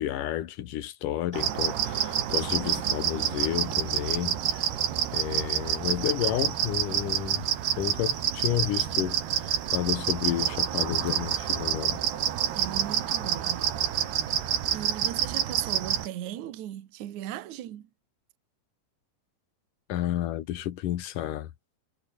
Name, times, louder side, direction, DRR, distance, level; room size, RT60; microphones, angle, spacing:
voice 1, 0.0-4.7 5.1-7.4 7.8-12.0 19.9-21.5, left 12 dB, 65° left, 2.6 m, -31 dB
sound 1, 1.3-16.1, right 10 dB, 80° right, 4.3 m, -28 dB
voice 2, 12.5-13.7 14.7-17.9, right 12 dB, 60° right, 2.5 m, -37 dB
omnidirectional pair, 4.6 m